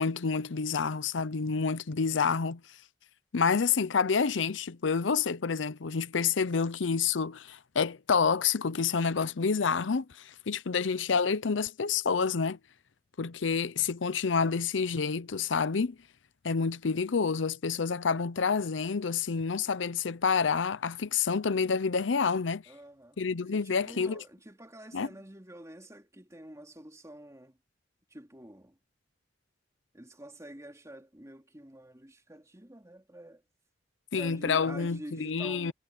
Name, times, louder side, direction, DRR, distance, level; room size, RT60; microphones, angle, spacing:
voice 1, 0.0-2.6 3.3-12.6 13.2-16.0 16.4-22.6 23.2-24.2 24.9-25.1 34.1-35.7, left 5 dB, 90° left, 0.7 m, -28 dB
voice 2, 22.7-27.6 28.1-28.8 29.9-33.4 34.1-35.7, right 1 dB, 15° right, 2.7 m, -48 dB
head